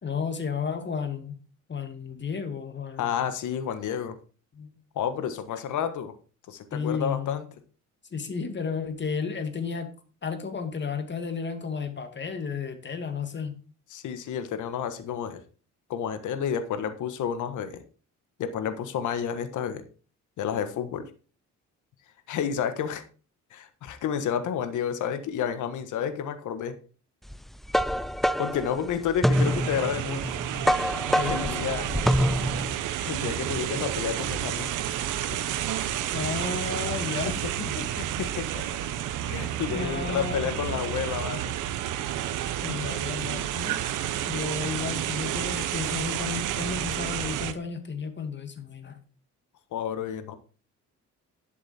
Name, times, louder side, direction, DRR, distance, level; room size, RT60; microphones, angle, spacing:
voice 1, 0.0-1.4 1.7-3.4 4.5-4.8 6.7-7.4 8.1-9.9 10.2-13.6 31.2-32.0 36.1-38.1 39.7-41.0 42.6-43.8 44.2-49.0, left 5 dB, 35° left, 7 dB, 2.2 m, -33 dB
voice 2, 3.0-4.2 4.9-6.1 6.5-7.4 13.9-15.4 15.9-17.8 18.4-19.8 20.4-21.0 22.3-23.0 23.5-26.7 28.4-30.2 31.3-31.9 33.0-34.8 38.0-38.6 39.3-41.5 49.7-50.4, left 8 dB, 80° left, 10 dB, 1.5 m, -30 dB
sound 1, 27.3-32.7, equal, ahead, 0.4 m, -26 dB
sound 2, 29.3-47.5, right 11 dB, 85° right, 1.1 m, -30 dB
11.5 x 7.3 x 4.4 m, 0.37 s
cardioid pair, 90°, 30 cm